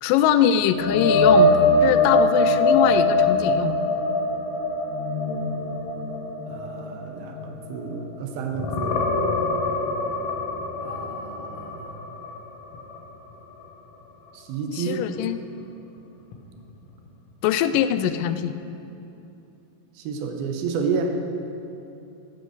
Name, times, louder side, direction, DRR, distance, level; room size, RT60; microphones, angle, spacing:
voice 1, 0.0-1.5 1.8-3.8 14.7-15.4 17.4-18.6, left 10 dB, 85° left, 11 dB, 1.9 m, -22 dB
sound 1, 0.7-8.2 8.5-12.4 12.7-13.0 16.3-16.4, left 2 dB, 70° left, 1.5 m, -22 dB
voice 2, 6.5-9.1 10.8-12.0 14.3-15.0 18.0-18.1 20.0-21.2, right 5 dB, 80° right, 4 dB, 2.6 m, -30 dB
12.0 x 8.1 x 6.4 m, 2.8 s
omnidirectional pair, 4.4 m